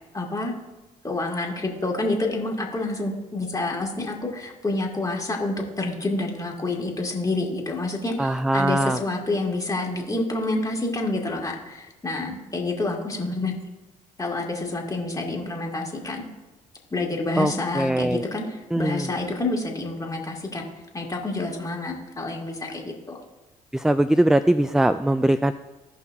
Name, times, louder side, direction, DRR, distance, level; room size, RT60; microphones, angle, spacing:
voice 1, 0.1-0.5 1.0-13.5 14.2-16.2 16.9-20.7 20.9-23.2, left 2 dB, 20° left, -1 dB, 2.4 m, -28 dB
voice 2, 8.2-9.0 17.4-18.2 18.7-19.1 23.7-25.5, right 1 dB, 5° right, 13 dB, 0.3 m, -21 dB
17.0 x 5.7 x 2.7 m, 1.1 s
supercardioid pair, 60°, 16 cm